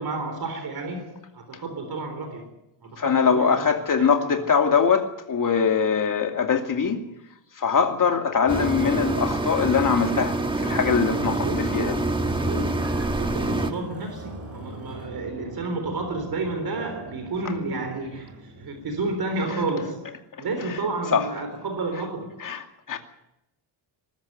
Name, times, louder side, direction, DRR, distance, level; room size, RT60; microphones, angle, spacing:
voice 1, 0.0-2.5 2.8-4.4 11.2-11.9 12.2-22.5, right 3 dB, 50° right, 3.9 m, -31 dB
voice 2, 3.0-7.0 7.5-12.1 20.4-20.8 21.1-21.3 22.4-23.0, left 6 dB, 40° left, 2.6 m, -23 dB
sound 1, 8.5-13.7, right 2 dB, 10° right, 1.5 m, -26 dB
sound 2, 10.8-19.3, right 1 dB, 30° right, 7.9 m, -43 dB
20.5 x 13.0 x 9.5 m
cardioid pair, 135°, 48 cm